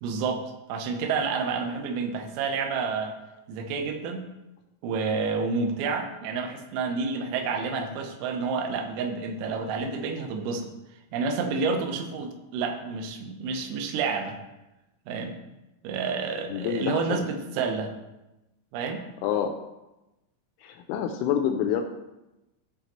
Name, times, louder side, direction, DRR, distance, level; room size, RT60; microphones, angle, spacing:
voice 1, 0.0-3.2 3.5-4.2 4.8-10.7 11.1-14.4 15.1-15.3 15.8-17.9 18.7-19.1, right 4 dB, 85° right, 5 dB, 3.6 m, -29 dB
voice 2, 16.5-17.3 19.2-19.5 20.6-21.8, left 9 dB, 85° left, 5 dB, 2.8 m, -27 dB
15.0 x 5.8 x 3.0 m, 0.97 s
omnidirectional pair, 5.9 m